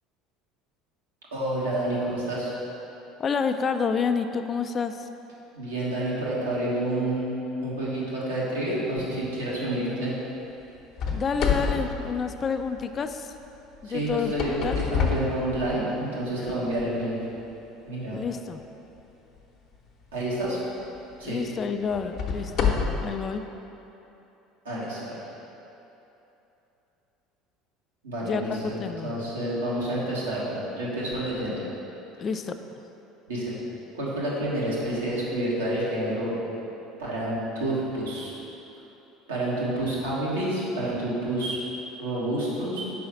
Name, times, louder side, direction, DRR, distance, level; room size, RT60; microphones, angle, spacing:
voice 1, 1.3-2.5 5.5-7.4 7.6-10.1 13.8-17.2 17.8-18.2 20.1-20.6 21.2-21.4 24.6-25.2 28.0-31.6 33.3-33.5 33.9-36.4 37.0-38.3 39.3-41.6 42.0-42.8, right 1 dB, 90° right, -7 dB, 1.4 m, -29 dB
voice 2, 3.2-5.1 11.1-13.3 13.8-14.3 14.6-14.8 18.1-18.6 21.2-22.8 23.0-23.4 28.2-29.2 32.2-32.6, left 5 dB, 40° left, 8 dB, 0.4 m, -29 dB
sound 1, 11.0-13.0 14.1-16.1 16.7-16.8 17.5-17.6 20.2-20.4 20.9-21.0 21.9-23.2, left 6 dB, 55° left, 0.8 m, -28 dB
4.7 x 4.2 x 5.8 m, 3.0 s
hypercardioid pair, 75°, 0 cm